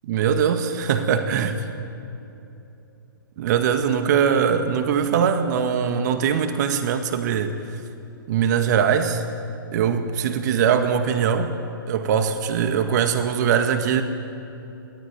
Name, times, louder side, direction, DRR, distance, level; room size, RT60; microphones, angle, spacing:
voice 1, 0.0-1.6 3.4-7.5 8.3-9.2 9.7-11.5 11.9-14.0, right 7 dB, 50° right, 7 dB, 2.0 m, -21 dB
22.5 x 18.0 x 9.6 m, 2.9 s
hypercardioid pair, 125°, 12 cm